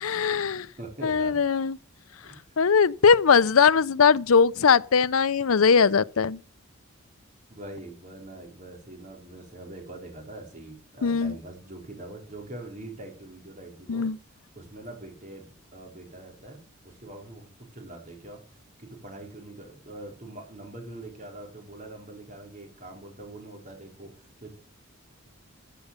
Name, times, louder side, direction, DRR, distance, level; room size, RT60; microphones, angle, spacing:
voice 1, 0.0-0.7 1.0-1.8 2.6-6.4 11.0-11.4 13.9-14.2, left 6 dB, 75° left, 0.6 m, -20 dB
voice 2, 0.8-1.4 2.2-2.4 7.5-14.1 14.5-16.6 16.8-18.4 18.8-24.5, right 1 dB, 35° right, 4.5 m, -43 dB
15.0 x 6.9 x 6.8 m
head